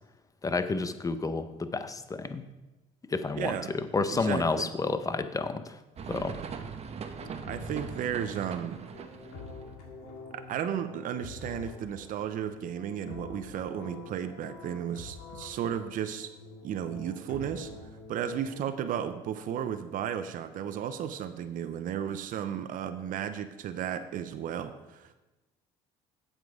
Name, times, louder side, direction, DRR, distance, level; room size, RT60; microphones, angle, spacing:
voice 1, 0.4-2.4 3.1-5.8 6.1-6.4, left 3 dB, 20° left, 11 dB, 0.7 m, -30 dB
voice 2, 3.4-3.7 4.1-4.7 7.5-8.8 10.3-16.3 16.6-17.7 18.1-25.1, right 9 dB, 60° right, 10 dB, 0.7 m, -34 dB
sound 1, 6.0-9.6, right 6 dB, 45° right, 0.9 m, -40 dB
sound 2, 7.2-19.0, left 3 dB, 90° left, 2.0 m, -46 dB
8.0 x 7.5 x 4.8 m, 1.1 s
supercardioid pair, 85°, 15 cm